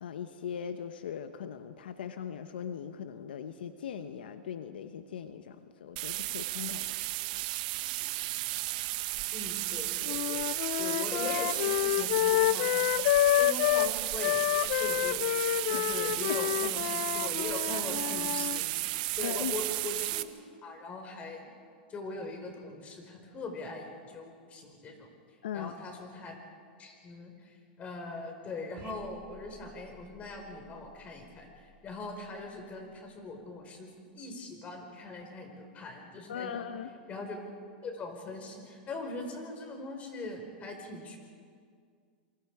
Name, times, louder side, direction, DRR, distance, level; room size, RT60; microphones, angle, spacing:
voice 1, 0.0-6.9 19.2-19.5 25.4-25.7 36.3-36.9, left 8 dB, 85° left, 10 dB, 1.0 m, -39 dB
sound 1, 6.0-20.2, right 18 dB, 60° right, 0.9 m, -33 dB
voice 2, 9.3-10.4 10.8-12.8 13.4-15.3 15.7-20.2 20.6-21.5 21.9-25.1 25.5-26.3 26.8-36.6 37.1-37.4 37.8-41.2, left 2 dB, 25° left, 3 dB, 4.8 m, -41 dB
sound 2, 10.1-13.9 14.2-18.6, left 16 dB, 60° left, 0.5 m, -28 dB
sound 3, 28.8-33.4, right 4 dB, 40° right, 2.7 m, -56 dB
27.5 x 24.5 x 4.9 m, 2.2 s
hypercardioid pair, 130°, 5 cm